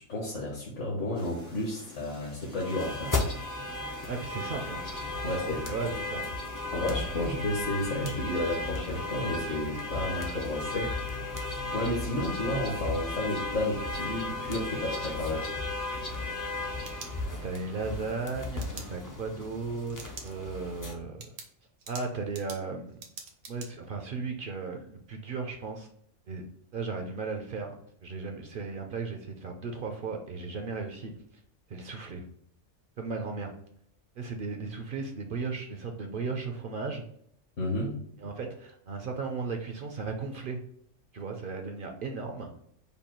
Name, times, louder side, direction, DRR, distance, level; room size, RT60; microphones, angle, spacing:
voice 1, 0.0-3.1 5.2-5.9 6.7-10.9 11.7-15.5 37.6-38.0, left 1 dB, 65° left, -4 dB, 1.4 m, -32 dB
sound 1, 1.1-16.9, left 1 dB, 80° left, 2.3 m, -50 dB
sound 2, 2.6-20.9, left 2 dB, 30° left, 0.3 m, -35 dB
voice 2, 4.1-4.8 5.2-6.3 7.1-7.2 17.3-21.3 21.9-23.0 23.5-25.9 26.3-26.4 26.7-27.7 28.0-31.1 31.7-32.2 33.0-33.5 34.2-37.0 38.2-40.6 41.1-42.5, right 4 dB, 55° right, 3 dB, 0.6 m, -36 dB
sound 3, 16.8-17.7 18.6-18.9 19.9-20.3 20.7-20.8 21.2-23.7, right 5 dB, 80° right, 1.3 m, -45 dB
5.3 x 2.3 x 4.3 m, 0.68 s
omnidirectional pair, 1.4 m